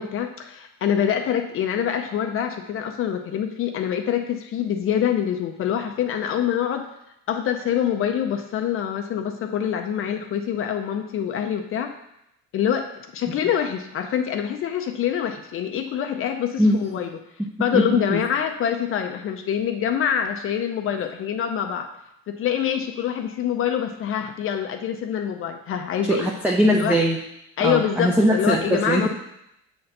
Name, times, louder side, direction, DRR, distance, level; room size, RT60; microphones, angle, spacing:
voice 1, 0.0-6.9 7.3-11.9 12.5-17.2 17.6-21.9 22.3-26.3 26.7-27.0 27.6-29.1, left 9 dB, 45° left, 5 dB, 0.6 m, -25 dB
voice 2, 17.7-18.2 26.1-27.2 27.6-29.1, equal, 5° right, 0 dB, 0.5 m, -20 dB
7.0 x 4.4 x 6.5 m, 0.82 s
cardioid pair, 160°, 30 cm